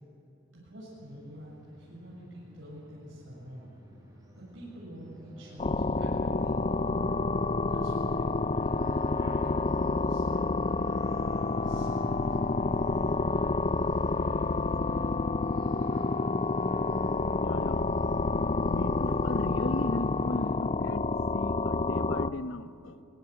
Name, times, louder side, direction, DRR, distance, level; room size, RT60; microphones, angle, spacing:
voice 1, 0.5-3.7 4.4-7.3 7.7-10.8 11.6-13.1, equal, 80° right, -6 dB, 7.0 m, -46 dB
sound 1, 0.9-20.5, equal, 20° right, 5.5 m, -52 dB
sound 2, 5.6-22.3, left 3 dB, 30° left, 0.5 m, -28 dB
voice 2, 17.4-17.9 18.3-23.0, left 2 dB, 85° left, 10 dB, 1.1 m, -37 dB
23.0 x 23.0 x 8.0 m, 2.8 s
head